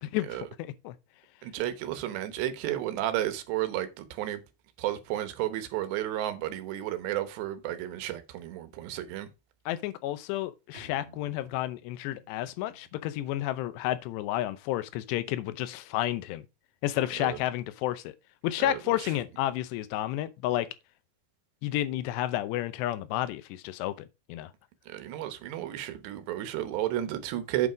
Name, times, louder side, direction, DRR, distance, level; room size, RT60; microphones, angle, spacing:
voice 1, 0.0-1.0 9.7-16.5 16.8-18.1 18.4-20.7 21.6-24.5, left 14 dB, 90° left, 2.9 m, -31 dB
voice 2, 1.4-4.4 4.8-9.3 17.2-17.4 18.6-19.1 24.9-27.7, right 13 dB, 90° right, 3.3 m, -32 dB
Bowed string instrument, 10.7-14.2, right 2 dB, 20° right, 2.2 m, -56 dB
8.4 x 5.5 x 5.0 m
omnidirectional pair, 4.8 m